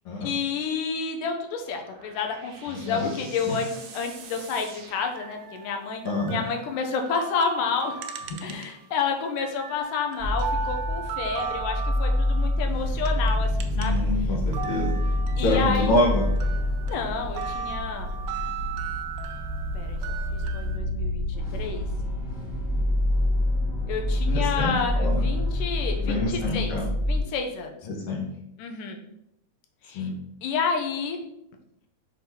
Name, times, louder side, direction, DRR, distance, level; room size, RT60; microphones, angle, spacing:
voice 1, 0.2-6.0 6.3-8.1 8.4-14.0 15.4-15.9 16.9-18.1 19.7-20.0 20.3-21.9 23.9-26.7 27.1-27.7 28.6-29.0 29.8-30.1 30.4-31.2, left 5 dB, 90° left, 4 dB, 2.3 m, -30 dB
sound 1, 1.3-5.9, right 5 dB, 70° right, 1.4 m, -47 dB
voice 2, 2.7-3.0 3.4-3.5 6.0-6.4 13.7-15.0 15.4-16.3 24.3-25.2 26.0-26.9 27.9-28.3 29.9-30.1, left 2 dB, 65° left, -1 dB, 1.4 m, -26 dB
sound 2, 4.4-8.9 9.3-14.1 14.4-20.8, right 6 dB, 90° right, 1.5 m, -37 dB
sound 3, 10.2-27.2, left 1 dB, 10° left, 0.5 m, -27 dB
6.0 x 3.7 x 4.3 m, 0.80 s
omnidirectional pair, 3.7 m